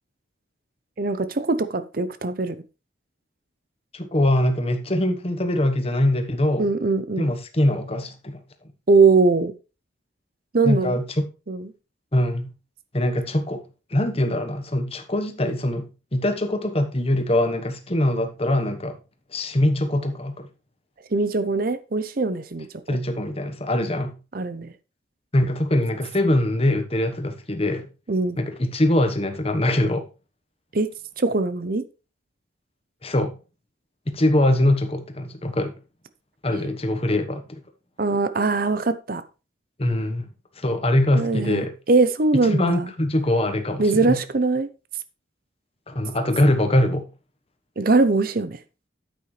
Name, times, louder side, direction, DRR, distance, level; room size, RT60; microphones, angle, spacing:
voice 1, 1.0-2.6 6.6-7.3 8.9-9.5 10.5-11.0 11.5-11.7 21.1-22.7 24.3-24.7 28.1-28.4 30.7-30.9 31.2-31.8 36.5-36.7 38.0-39.2 41.1-42.9 43.8-44.7 47.8-48.6, right 3 dB, 45° right, 0.7 m, -21 dB
voice 2, 3.9-6.7 7.2-8.4 10.6-11.2 12.1-12.5 12.9-13.6 13.9-19.0 19.3-20.5 22.9-24.2 25.3-27.9 28.4-30.0 33.0-33.3 34.1-35.7 36.4-37.6 39.8-40.3 40.6-41.7 42.4-44.2 45.9-47.0, left 1 dB, 30° left, 1.2 m, -23 dB
9.6 x 8.6 x 3.2 m
head